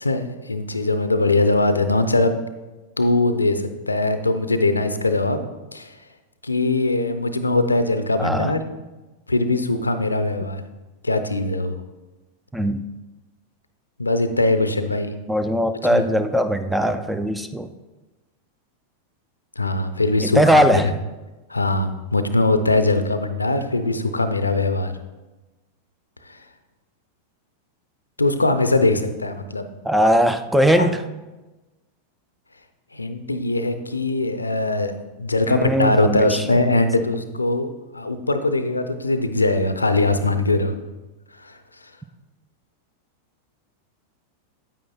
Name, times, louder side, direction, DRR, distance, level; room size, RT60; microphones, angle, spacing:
voice 1, 0.0-2.3 3.0-5.4 5.7-5.9 6.4-8.6 9.3-10.6 11.0-11.8 14.0-15.1 15.8-16.1 19.6-20.9 21.5-24.9 26.3-26.4 28.2-29.7 30.7-30.9 32.9-34.9 35.2-37.7 37.9-40.7 41.4-41.5, left 2 dB, 80° left, 9 dB, 0.5 m, -21 dB
voice 2, 8.2-8.5 12.5-12.8 15.3-17.7 20.2-20.9 29.8-31.0 35.5-36.6, equal, 5° right, 10 dB, 0.4 m, -20 dB
9.3 x 8.9 x 2.3 m, 1.1 s
figure-of-eight pair, 90°, 0 cm